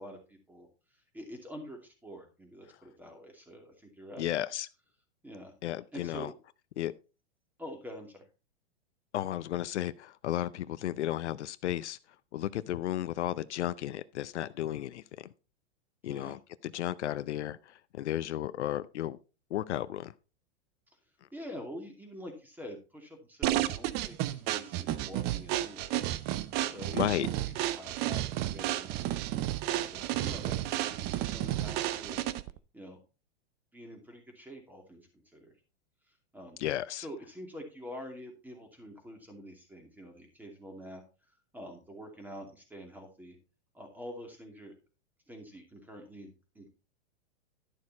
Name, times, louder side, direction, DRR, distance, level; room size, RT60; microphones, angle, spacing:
voice 1, 0.0-4.3 5.2-5.5 5.9-6.3 7.6-8.3 16.1-16.4 21.3-27.3 27.6-29.1 29.7-32.3 32.7-33.0 33.7-35.5 36.1-36.6 36.9-41.0 41.3-43.4 43.7-44.7 45.3-46.7, equal, 5° right, 2.6 m, -46 dB
voice 2, 4.2-4.7 5.6-6.3 6.8-6.9 9.1-12.0 12.3-15.0 16.0-19.2 19.5-20.1 26.9-27.3 36.6-37.0, left 12 dB, 80° left, 0.7 m, -33 dB
sound 1, 23.4-32.6, right 14 dB, 30° right, 0.5 m, -32 dB
12.0 x 6.5 x 4.1 m
hypercardioid pair, 135°, 34 cm